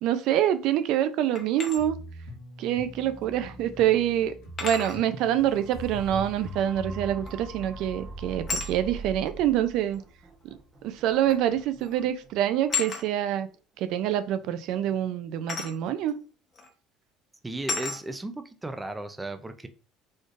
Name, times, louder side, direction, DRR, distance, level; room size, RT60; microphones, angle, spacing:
voice 1, 0.0-1.9 2.6-4.3 4.6-10.0 10.8-13.5 13.8-16.1, right 11 dB, 70° right, 0.4 m, -26 dB
sound 1, 1.3-1.8 3.3-3.4 4.6-5.0 7.3-7.6 8.5-8.7 9.9-10.0 11.3-11.5 11.8-12.1 12.7-13.1 15.5-15.8 16.6-16.7 17.7-18.0, left 4 dB, 35° left, 1.0 m, -32 dB
sound 2, 1.8-7.1, left 1 dB, 85° left, 1.3 m, -43 dB
sound 3, 5.0-13.0 13.5-13.6, right 3 dB, 35° right, 1.0 m, -42 dB
voice 2, 17.4-19.7, right 2 dB, 10° right, 0.4 m, -35 dB
4.2 x 3.1 x 2.5 m
cardioid pair, 120°, 0 cm